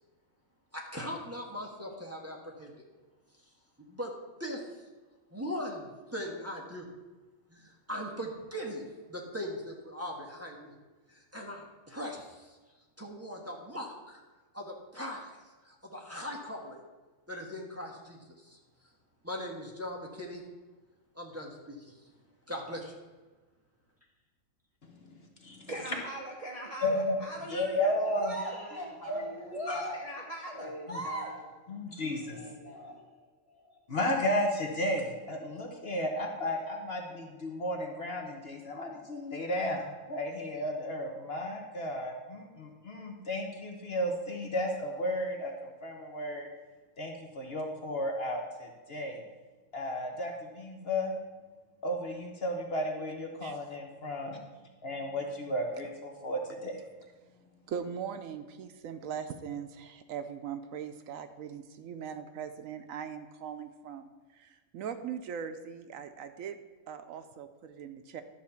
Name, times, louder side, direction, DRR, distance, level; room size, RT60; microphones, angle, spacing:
voice 1, 0.7-2.8 3.4-3.5 3.9-4.1 4.4-4.9 5.3-6.9 7.5-10.8 11.1-12.6 13.0-14.2 14.5-16.8 17.3-18.9 19.2-20.4 21.1-22.1 22.5-23.0, equal, 10° right, -2 dB, 1.2 m, -40 dB
voice 2, 25.7-28.5 29.5-31.3, right 1 dB, 30° right, -1 dB, 0.8 m, -39 dB
voice 3, 26.8-27.2 27.5-28.4 29.1-29.2 29.7-29.8 30.9-31.0 31.7-32.4 33.9-46.5 47.0-49.2 49.7-51.2 51.8-54.4 54.8-56.8, left 1 dB, 50° left, 2 dB, 1.2 m, -33 dB
voice 4, 28.0-30.0 30.5-31.5 32.2-33.8, left 1 dB, 15° left, -5 dB, 2.5 m, -44 dB
voice 5, 57.7-66.6 66.9-68.2, right 7 dB, 80° right, 9 dB, 1.0 m, -40 dB
11.5 x 4.1 x 6.9 m, 1.3 s
omnidirectional pair, 1.4 m